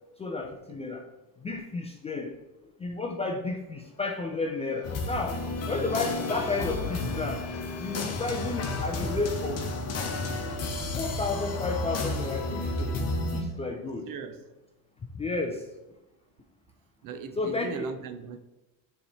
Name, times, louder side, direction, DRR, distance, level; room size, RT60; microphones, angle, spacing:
voice 1, 0.2-1.0 1.4-2.3 2.8-5.4 5.7-7.4 7.8-9.6 10.9-13.0 13.3-14.1 15.1-15.6 17.4-17.9, left 3 dB, 15° left, 0.4 m, -32 dB
sound 1, 3.8-14.1, left 2 dB, 85° left, 1.1 m, -43 dB
sound 2, 4.8-13.4, left 2 dB, 35° left, 0.9 m, -32 dB
voice 2, 14.1-14.4 17.0-18.4, right 6 dB, 50° right, 0.7 m, -38 dB
9.3 x 3.3 x 4.1 m
cardioid pair, 135°, 44 cm